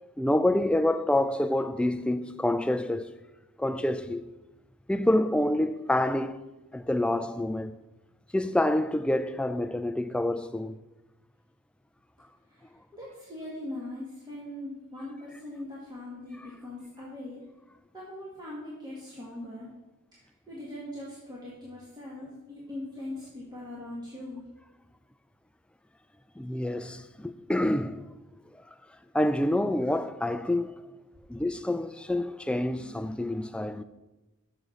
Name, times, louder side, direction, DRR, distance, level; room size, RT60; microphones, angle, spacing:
voice 1, 0.2-3.1 3.6-4.3 4.9-6.4 6.7-7.8 8.3-10.8 26.4-28.1 29.1-30.7 31.3-33.8, left 1 dB, 5° left, 0.3 m, -27 dB
voice 2, 12.5-17.4 17.9-19.7 20.1-24.4, left 1 dB, 20° right, 1.8 m, -41 dB
7.0 x 6.3 x 6.4 m
head